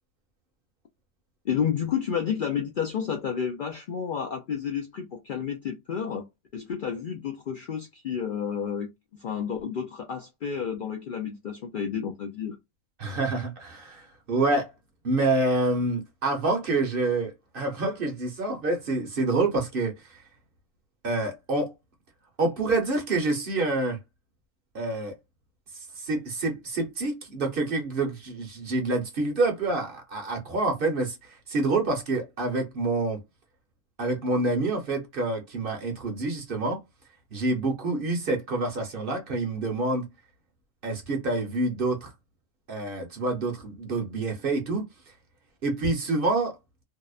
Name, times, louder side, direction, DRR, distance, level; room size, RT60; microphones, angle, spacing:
voice 1, 1.4-6.3 6.5-12.6, left 7 dB, 60° left, 0.5 m, -31 dB
voice 2, 13.0-14.7 15.0-20.2 21.0-21.7 22.4-24.0 24.7-25.1 25.7-33.2 34.0-36.8 37.3-40.1 40.8-42.1 42.7-44.9 45.6-46.6, right 2 dB, 50° right, 0.9 m, -27 dB
2.7 x 2.1 x 2.3 m
omnidirectional pair, 1.3 m